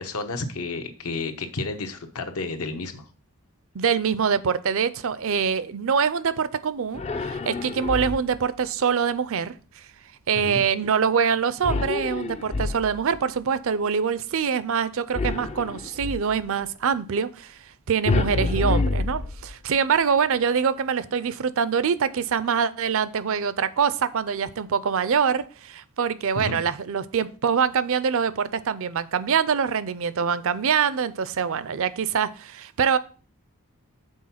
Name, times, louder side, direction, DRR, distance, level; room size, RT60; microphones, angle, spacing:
voice 1, 0.0-3.1 10.3-10.6 26.3-26.6, left 3 dB, 75° left, 6 dB, 1.0 m, -31 dB
voice 2, 3.7-9.5 10.3-17.6 17.9-33.0, right 6 dB, 65° right, 16 dB, 0.5 m, -24 dB
sound 1, 6.9-8.5 11.6-13.2 15.1-16.3 18.0-19.7, left 3 dB, 30° left, 0.3 m, -27 dB
6.3 x 4.2 x 5.7 m, 0.38 s
head